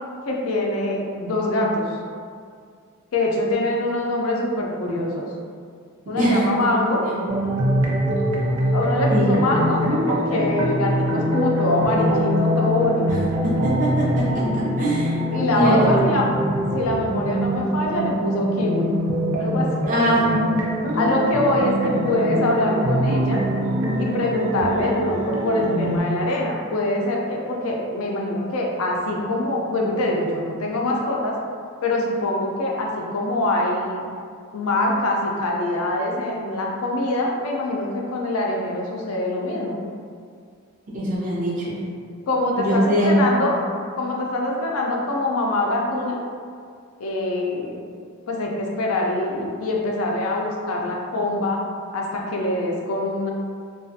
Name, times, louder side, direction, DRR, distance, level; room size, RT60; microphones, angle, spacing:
voice 1, 0.2-1.9 3.1-5.2 6.1-7.0 8.7-13.2 15.3-16.2 16.7-18.9 19.4-19.8 20.9-23.4 24.0-31.4 31.8-34.0 34.5-39.8 42.3-43.5 44.0-46.2 47.0-47.8 48.3-51.6 51.9-53.3, left 1 dB, 90° left, -1 dB, 0.4 m, -24 dB
sound 1, 7.3-26.0, equal, 90° right, 0.5 m, -23 dB
voice 2, 13.4-15.2 15.5-15.8 19.9-20.3 40.9-41.8 42.6-43.2, right 1 dB, 40° right, -7 dB, 0.5 m, -22 dB
2.3 x 2.3 x 2.6 m, 2.2 s
head